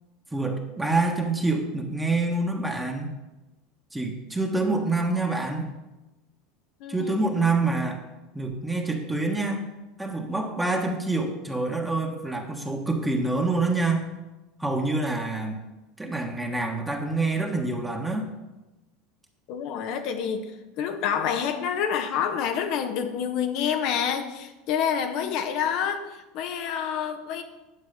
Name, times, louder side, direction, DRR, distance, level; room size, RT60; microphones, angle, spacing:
voice 1, 0.3-3.1 3.9-5.7 6.9-8.0 8.3-9.6 10.0-14.1 14.6-15.6 16.0-18.3, right 3 dB, 10° right, 1 dB, 1.5 m, -26 dB
voice 2, 6.8-7.1 19.5-20.5 20.8-27.4, left 8 dB, 55° left, 6 dB, 1.1 m, -28 dB
9.8 x 7.0 x 5.3 m, 1.1 s
figure-of-eight pair, 75°, 0 cm